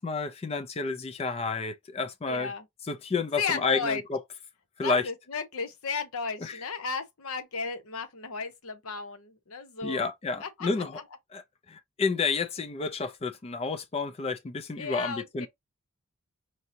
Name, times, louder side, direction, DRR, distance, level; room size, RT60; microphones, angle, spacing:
voice 1, 0.0-2.5 2.8-4.2 4.8-5.1 6.4-6.6 9.8-11.0 11.3-11.4 11.7-15.5, left 4 dB, 25° left, 0.3 m, -30 dB
voice 2, 2.3-2.6 3.4-4.0 4.8-10.1 10.4-10.7 10.9-11.0 14.8-15.5, left 5 dB, 75° left, 0.8 m, -34 dB
4.6 x 2.6 x 2.6 m
head